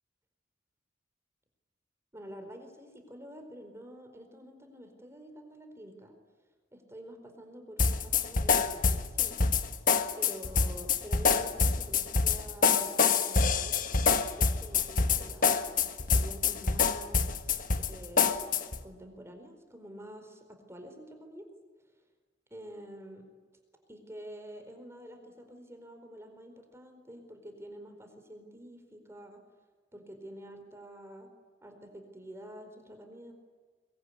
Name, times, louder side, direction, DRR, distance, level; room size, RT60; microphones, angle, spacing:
voice 1, 2.1-6.1 6.7-9.4 10.2-13.8 14.3-15.9 16.1-17.5 17.9-18.3 18.8-21.4 22.5-23.3 23.9-29.4 29.9-31.3 31.6-33.3, equal, 15° right, 6 dB, 4.5 m, -48 dB
sound 1, 7.8-18.8, left 5 dB, 45° left, 1.4 m, -26 dB
23.5 x 22.5 x 9.8 m, 1.4 s
head